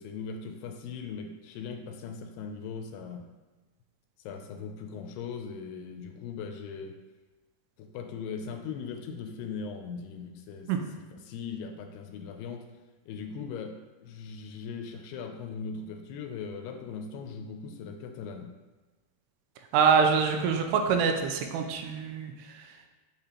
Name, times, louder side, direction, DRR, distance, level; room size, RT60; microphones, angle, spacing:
voice 1, 0.0-3.3 4.2-7.0 7.8-12.7 13.1-18.5, left 5 dB, 80° left, 5 dB, 2.5 m, -39 dB
voice 2, 19.7-22.7, right 6 dB, 85° right, 5 dB, 2.6 m, -25 dB
6.7 x 6.4 x 2.9 m, 1.2 s
omnidirectional pair, 4.8 m